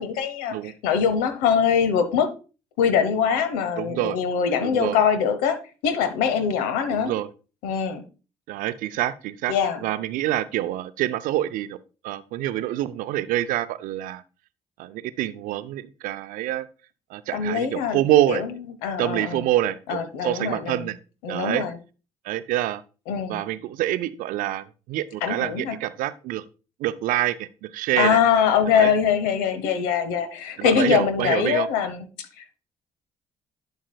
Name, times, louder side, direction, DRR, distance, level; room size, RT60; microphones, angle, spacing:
voice 1, 0.0-2.3 2.8-5.6 5.8-7.1 7.6-8.0 9.5-9.8 17.3-18.0 18.3-18.5 18.8-19.4 19.9-20.9 21.2-21.7 23.1-23.4 25.2-25.8 28.0-32.6, left 7 dB, 75° left, 10 dB, 0.9 m, -23 dB
voice 2, 3.8-4.2 4.6-5.0 6.9-7.3 8.5-9.5 9.8-11.8 12.0-14.2 14.8-16.7 17.1-18.4 19.0-21.0 21.3-21.6 22.2-22.8 23.3-26.4 26.8-28.2 28.7-28.9 30.6-31.7, right 14 dB, 65° right, 13 dB, 0.5 m, -26 dB
11.5 x 5.5 x 2.2 m, 0.34 s
hypercardioid pair, 50°, 15 cm